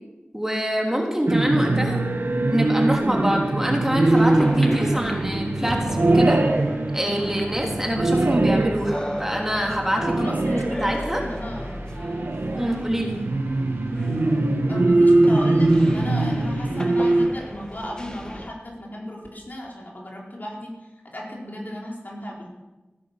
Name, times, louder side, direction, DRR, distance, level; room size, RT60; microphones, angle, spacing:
voice 1, 0.3-2.0 2.5-6.4 6.9-11.2 12.5-13.2, equal, 10° right, 0 dB, 3.2 m, -25 dB
sound 1, 1.3-17.3, right 2 dB, 70° right, 1.5 m, -22 dB
sound 2, 3.9-18.5, equal, 20° left, 1.8 m, -36 dB
voice 2, 10.1-11.8 12.4-12.7 14.7-20.7 21.1-22.5, left 1 dB, 50° left, -2 dB, 4.3 m, -35 dB
16.5 x 10.5 x 7.5 m, 1.1 s
wide cardioid pair, 55°, 4 cm